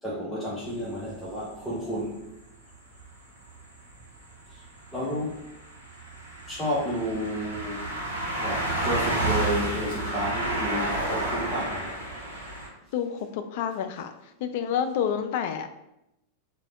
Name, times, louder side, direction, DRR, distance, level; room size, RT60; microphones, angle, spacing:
voice 1, 0.0-2.2 4.9-5.4 6.5-7.9 8.4-12.0, equal, 5° left, -8 dB, 0.8 m, -31 dB
sound 1, 0.7-0.8 2.3-2.4 3.0-3.2 3.5-3.6 3.9-12.7, right 2 dB, 80° right, 0.8 m, -31 dB
voice 2, 12.9-14.1 14.4-15.7, left 8 dB, 50° left, 8 dB, 0.3 m, -28 dB
3.3 x 2.2 x 3.7 m, 0.86 s
figure-of-eight pair, 90°, 0 cm